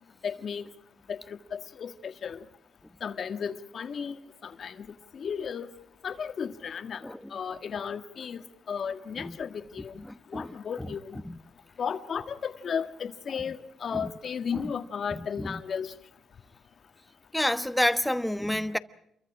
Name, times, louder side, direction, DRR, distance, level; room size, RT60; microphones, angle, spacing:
voice 1, 0.2-0.6 1.1-2.4 3.0-4.9 5.1-5.7 6.0-10.0 10.3-11.2 11.8-15.9, left 7 dB, 55° left, 1.7 m, -34 dB
voice 2, 10.0-10.9 11.2-11.4 13.9-14.1 14.5-14.7 15.1-15.6 17.3-18.8, left 1 dB, 5° left, 1.1 m, -30 dB
28.5 x 23.5 x 4.9 m
cardioid pair, 90°, 0 cm